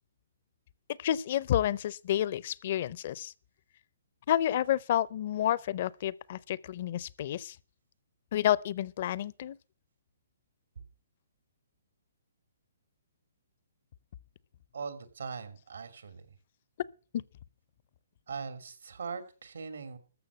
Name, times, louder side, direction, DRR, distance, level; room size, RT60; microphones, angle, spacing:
voice 1, 1.0-3.3 4.3-7.6 8.3-9.6, left 11 dB, 45° left, 0.5 m, -30 dB
voice 2, 14.7-16.4 18.3-20.0, right 5 dB, 90° right, 2.7 m, -40 dB
14.0 x 6.2 x 8.2 m
hypercardioid pair, 160°, 0 cm